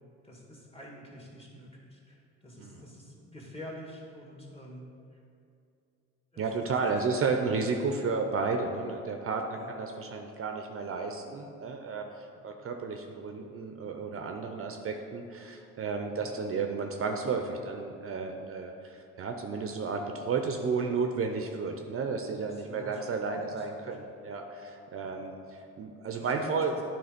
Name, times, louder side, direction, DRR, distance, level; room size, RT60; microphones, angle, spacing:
voice 1, 0.2-5.2 6.3-6.7 8.0-8.1 9.6-9.7 12.4-12.5 16.1-16.3 22.5-23.0 23.3-24.0 25.0-25.1 26.1-26.8, equal, 20° left, -3 dB, 1.8 m, -48 dB
voice 2, 6.4-26.7, right 4 dB, 50° right, 4 dB, 0.6 m, -32 dB
9.5 x 3.5 x 5.1 m, 2.5 s
cardioid pair, 90°, 30 cm